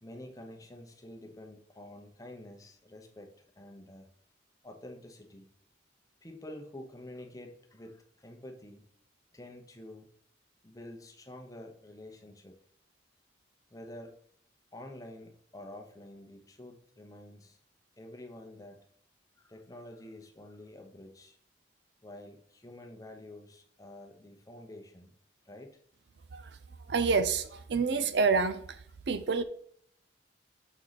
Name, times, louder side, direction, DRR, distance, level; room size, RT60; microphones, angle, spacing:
voice 1, 0.0-4.1 4.6-5.5 6.2-8.8 9.3-10.1 10.6-12.5 13.7-14.2 14.7-17.6 18.0-18.8 19.4-21.4 22.0-25.1 25.4-25.8 26.9-27.0, left 1 dB, 20° left, 3 dB, 0.8 m, -48 dB
voice 2, 26.9-28.6 29.1-29.4, right 4 dB, 60° right, 11 dB, 0.5 m, -27 dB
6.3 x 4.5 x 4.0 m, 0.65 s
head